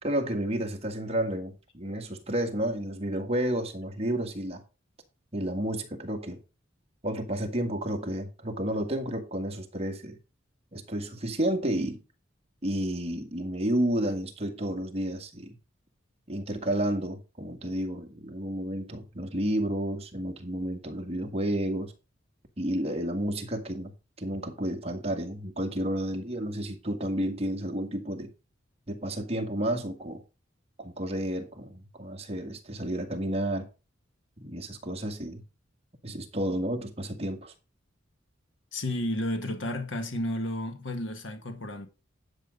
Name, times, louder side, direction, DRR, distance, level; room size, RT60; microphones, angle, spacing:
voice 1, 0.0-4.6 5.3-6.4 7.0-10.2 10.7-12.0 12.6-15.5 16.3-21.9 22.6-23.9 24.2-28.3 28.9-30.2 30.8-33.7 34.4-35.4 36.0-37.5, right 1 dB, 35° right, 1.9 m, -31 dB
voice 2, 38.7-41.9, left 1 dB, 70° left, 1.7 m, -32 dB
10.5 x 6.3 x 5.2 m
head